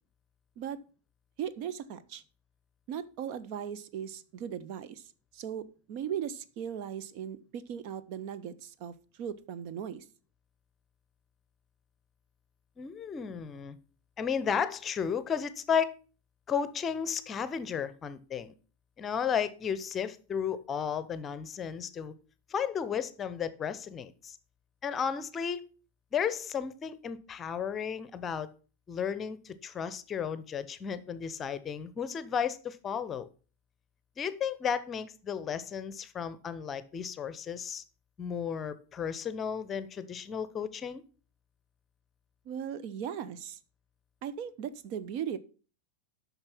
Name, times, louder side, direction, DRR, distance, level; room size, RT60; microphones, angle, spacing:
voice 1, 1.4-2.2 2.9-10.0 42.5-43.6 44.2-45.4, right 8 dB, 45° right, 15 dB, 0.7 m, -38 dB
voice 2, 12.8-13.8 14.2-15.9 16.5-18.5 19.0-22.1 22.5-24.4 24.8-25.7 26.1-28.5 28.9-33.3 34.2-37.8 38.2-41.0, left 7 dB, 25° left, 15 dB, 0.8 m, -33 dB
8.8 x 6.0 x 5.9 m, 0.37 s
figure-of-eight pair, 90°, 0 cm